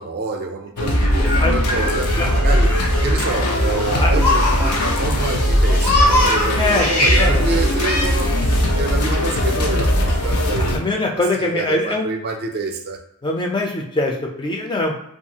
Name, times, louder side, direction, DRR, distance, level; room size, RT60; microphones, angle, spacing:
voice 1, 0.0-2.7 3.0-11.1 11.4-13.0, right 4 dB, 45° right, 4 dB, 0.4 m, -27 dB
sound 1, 0.8-10.8, equal, 85° left, 0.5 m, -19 dB
Laughter, 1.0-5.1 5.4-7.3 7.8-8.0, left 2 dB, 70° left, 0.9 m, -22 dB
voice 2, 6.6-6.9 7.2-7.5 10.7-12.1 13.2-14.9, left 2 dB, 20° left, 1 dB, 0.4 m, -22 dB
2.6 x 2.4 x 2.8 m, 0.76 s
head